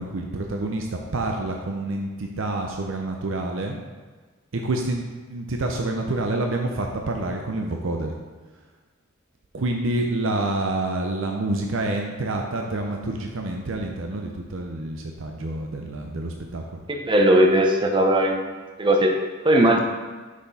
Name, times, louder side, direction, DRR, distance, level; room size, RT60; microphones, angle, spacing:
voice 1, 0.0-3.8 4.5-5.0 5.3-8.1 9.5-16.8, right 2 dB, 60° right, 2 dB, 0.6 m, -28 dB
voice 2, 16.9-18.5 18.8-19.1 19.4-19.8, right 1 dB, 20° right, 2 dB, 0.7 m, -18 dB
6.2 x 6.0 x 4.1 m, 1.4 s
head